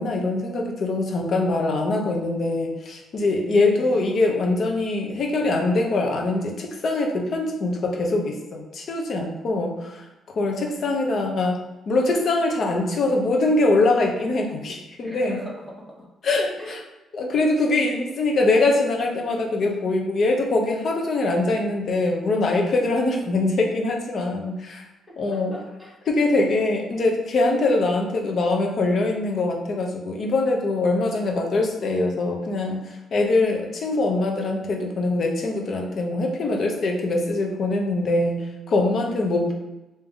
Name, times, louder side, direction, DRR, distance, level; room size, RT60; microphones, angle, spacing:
voice 1, 0.0-10.0 10.3-11.6 11.9-15.4 16.2-16.8 17.1-24.8 25.2-25.6 26.1-39.5, left 2 dB, 55° left, 1 dB, 0.8 m, -23 dB
voice 2, 3.3-4.0 10.4-11.2 15.0-16.1 16.6-16.8 25.1-26.0 38.9-39.3, left 1 dB, 10° left, -3 dB, 1.1 m, -41 dB
3.5 x 2.8 x 3.5 m, 1.0 s
cardioid pair, 90°, 0 cm